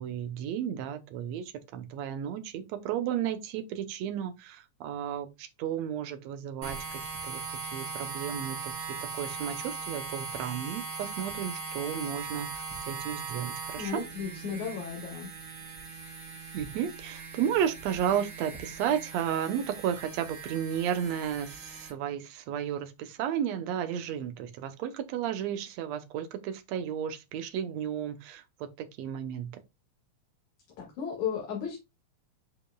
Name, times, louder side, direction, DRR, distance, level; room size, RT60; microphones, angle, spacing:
voice 1, 0.0-7.4 7.7-8.9 9.1-14.1 16.5-28.4 28.8-29.5, right 9 dB, 75° right, 1.9 m, -33 dB
sound 1, 6.6-21.9, right 4 dB, 40° right, 3.3 m, -40 dB
voice 2, 13.8-15.3 30.8-31.8, left 7 dB, 75° left, 3.1 m, -34 dB
8.7 x 5.2 x 2.2 m
omnidirectional pair, 3.4 m